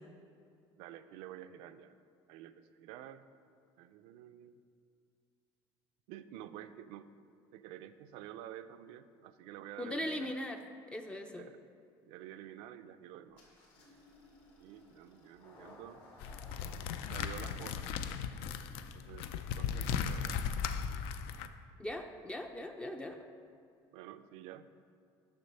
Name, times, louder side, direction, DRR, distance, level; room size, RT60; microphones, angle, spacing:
voice 1, 0.8-1.9 2.3-3.3 3.8-4.6 6.1-10.4 11.3-11.6 12.0-13.4 14.6-16.0 17.1-17.9 18.9-19.3 19.6-20.4 23.9-24.7, right 11 dB, 85° right, 11 dB, 0.4 m, -50 dB
voice 2, 9.8-10.6 10.9-11.5 21.8-23.2, left 1 dB, 10° left, 5 dB, 0.3 m, -39 dB
Engine starting, 13.4-20.7, left 1 dB, 70° left, 2.1 m, -60 dB
sound 1, 16.2-21.5, left 7 dB, 85° left, 0.4 m, -37 dB
6.9 x 6.1 x 5.4 m, 2.4 s
cardioid pair, 155°, 9 cm